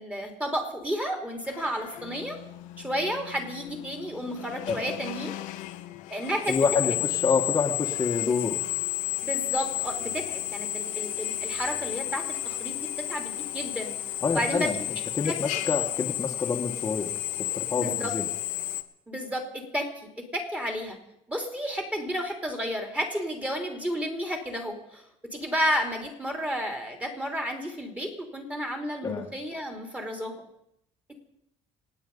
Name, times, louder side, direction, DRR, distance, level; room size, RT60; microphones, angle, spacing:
voice 1, 0.0-2.4 2.8-5.4 6.1-6.6 9.2-12.8 13.1-13.9 14.3-14.7 15.2-15.3 17.7-18.1 19.1-19.9 20.3-21.0 21.3-25.0 25.3-30.3, equal, 10° right, 3 dB, 3.1 m, -31 dB
Drill, 1.4-18.8, left 15 dB, 85° left, 1.0 m, -32 dB
voice 2, 6.5-8.6 14.2-14.8 15.1-17.1 17.4-18.3 29.0-29.3, left 5 dB, 25° left, 1 dB, 1.5 m, -27 dB
26.5 x 9.1 x 5.4 m, 0.78 s
cardioid pair, 125°, 13 cm